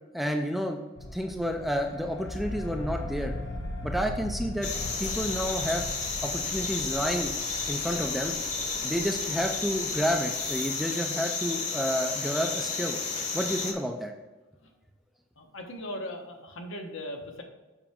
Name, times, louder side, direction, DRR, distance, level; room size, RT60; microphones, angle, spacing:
voice 1, 0.1-0.8 1.1-3.3 3.8-4.7 5.0-5.9 6.2-7.3 7.7-8.3 8.8-13.0 13.3-14.1, equal, ahead, 3 dB, 0.4 m, -30 dB
sound 1, 1.0-11.1, left 1 dB, 55° left, 1.6 m, -39 dB
sound 2, 4.6-13.7, left 4 dB, 35° left, 1.0 m, -32 dB
voice 2, 15.4-17.4, left 1 dB, 70° left, 2 dB, 1.2 m, -38 dB
7.0 x 5.8 x 3.6 m, 1.2 s
head